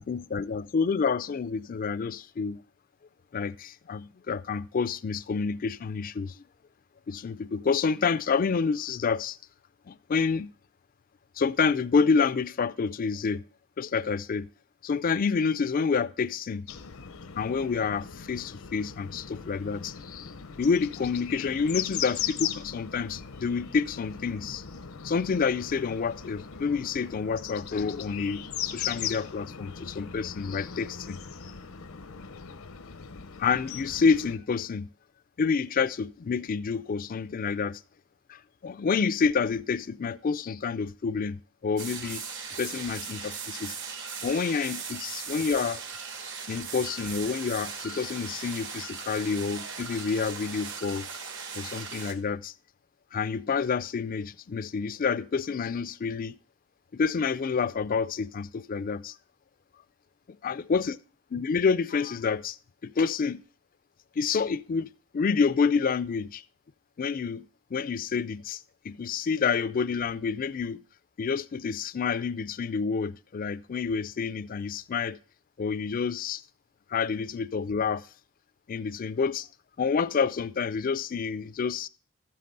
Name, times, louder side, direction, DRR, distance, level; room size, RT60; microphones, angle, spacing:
voice 1, 0.0-2.6 3.3-6.4 7.1-9.4 9.9-10.5 11.4-13.4 13.8-14.5 14.8-16.7 17.4-20.3 20.6-24.6 25.0-31.2 33.4-34.9 35.4-37.8 38.3-42.2 42.6-43.8 44.2-45.8 46.5-51.1 51.5-52.5 53.1-56.4 56.9-59.1 60.4-61.0 61.3-62.6 62.8-63.4 64.2-66.4 67.0-70.8 71.2-75.2 75.6-76.4 76.9-78.0 78.7-79.5 79.8-81.9, left 5 dB, 40° left, 0.4 m, -28 dB
sound 1, 16.7-34.4, left 8 dB, 80° left, 0.8 m, -39 dB
sound 2, 41.8-52.1, right 5 dB, 60° right, 1.3 m, -38 dB
13.0 x 7.6 x 3.9 m
head